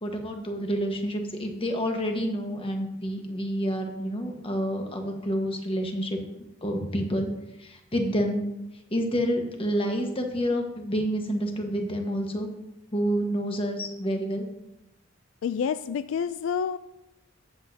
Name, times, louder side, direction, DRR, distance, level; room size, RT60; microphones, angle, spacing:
voice 1, 0.0-6.2 6.6-7.3 7.6-8.4 8.9-12.5 12.9-14.5, equal, 30° left, 3 dB, 1.3 m, -28 dB
voice 2, 15.4-16.8, left 7 dB, 80° left, 13 dB, 0.3 m, -28 dB
14.0 x 7.9 x 2.8 m, 0.91 s
head